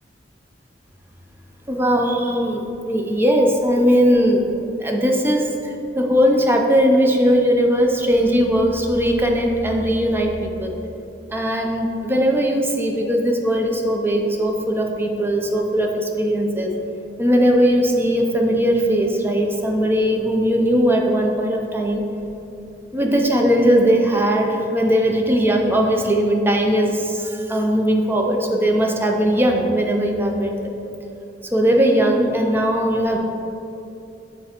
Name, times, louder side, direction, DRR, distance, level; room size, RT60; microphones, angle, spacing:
voice 1, 1.7-4.4 4.8-10.7 11.3-16.7 17.2-22.0 22.9-30.5 31.5-33.2, equal, 15° right, 1 dB, 0.5 m, -19 dB
7.2 x 3.4 x 4.3 m, 2.8 s
head